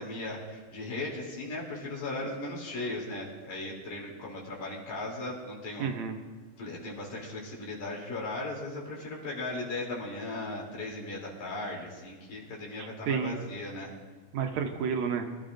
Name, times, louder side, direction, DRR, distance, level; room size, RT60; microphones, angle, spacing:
voice 1, 0.0-5.9 6.6-13.9, left 2 dB, 75° left, -3 dB, 4.4 m, -37 dB
voice 2, 5.8-6.2 12.8-13.4 14.3-15.2, right 6 dB, 70° right, 4 dB, 2.0 m, -31 dB
24.5 x 13.0 x 2.6 m, 1.4 s
omnidirectional pair, 3.5 m